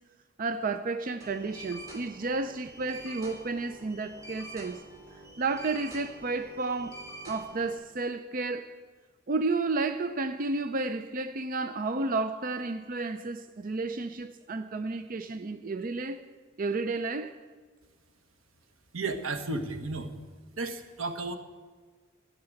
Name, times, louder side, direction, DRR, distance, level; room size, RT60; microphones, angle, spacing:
voice 1, 0.4-4.8 5.4-8.8 9.3-16.2 16.6-17.4, right 3 dB, 45° right, 0.5 m, -32 dB
sound 1, 1.2-7.7, right 1 dB, 15° right, 3.6 m, -47 dB
voice 2, 18.9-20.1 20.6-21.4, right 3 dB, 90° right, 1.3 m, -33 dB
13.5 x 6.8 x 8.9 m
head